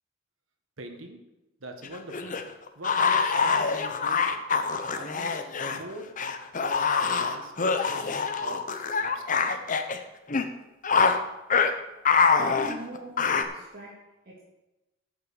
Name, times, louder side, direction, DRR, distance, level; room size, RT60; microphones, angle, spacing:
voice 1, 0.8-1.2 1.6-2.3 2.7-4.4 4.9-5.3 5.6-6.1 6.6-8.7 9.0-9.7, right 2 dB, 90° right, 4 dB, 1.6 m, -42 dB
sound 1, 1.8-5.8 6.2-10.0 10.3-10.5 10.8-11.2 11.5-11.7 12.1-13.4, left 5 dB, 40° left, 0.8 m, -25 dB
voice 2, 12.4-14.4, right 1 dB, 50° right, -7 dB, 2.5 m, -41 dB
10.0 x 6.4 x 7.2 m, 1.0 s
head